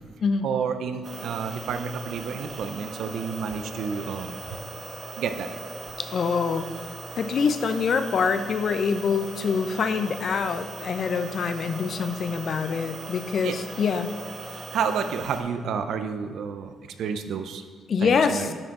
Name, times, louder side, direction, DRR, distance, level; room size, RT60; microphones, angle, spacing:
voice 1, 0.4-4.3 5.2-5.5 13.4-13.5 14.5-16.7 17.0-17.6 18.0-18.5, right 6 dB, 70° right, 8 dB, 0.6 m, -30 dB
sound 1, 1.0-15.4, right 2 dB, 50° right, 1.2 m, -39 dB
voice 2, 6.0-6.7 7.2-14.1 17.9-18.5, left 5 dB, 55° left, 9 dB, 0.5 m, -25 dB
10.5 x 4.7 x 3.7 m, 1.5 s
cardioid pair, 90°, 0 cm